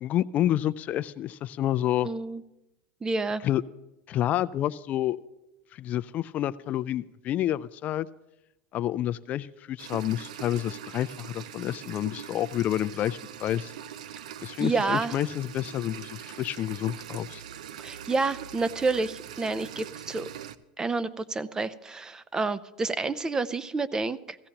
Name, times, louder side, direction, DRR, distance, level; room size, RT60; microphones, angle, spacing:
voice 1, 0.0-2.1 3.4-3.6 4.1-5.2 5.7-8.1 8.7-13.7 14.4-17.4, left 12 dB, 40° left, 15 dB, 0.4 m, -29 dB
voice 2, 2.0-2.4 3.0-3.4 14.6-15.1 17.8-20.3 20.8-24.4, right 3 dB, 20° right, 15 dB, 0.5 m, -29 dB
sound 1, 9.8-20.5, right 10 dB, 85° right, 0.5 m, -42 dB
16.5 x 15.0 x 2.9 m, 0.96 s
supercardioid pair, 105°, 4 cm